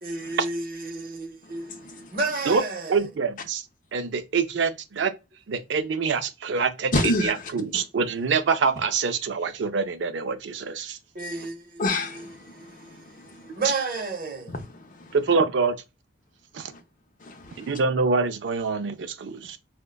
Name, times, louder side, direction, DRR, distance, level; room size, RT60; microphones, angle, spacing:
voice 1, 0.0-3.0 11.1-11.8 12.1-14.6, right 3 dB, 50° right, 0.8 m, -32 dB
voice 2, 2.9-3.6 3.9-5.1 5.5-11.0 15.1-15.8 16.5-16.7 17.6-19.6, right 5 dB, 80° right, 0.4 m, -25 dB
voice 3, 6.9-7.3 11.8-13.4 14.5-15.1 17.2-17.7, left 2 dB, 45° left, 0.6 m, -29 dB
4.8 x 2.1 x 2.2 m
head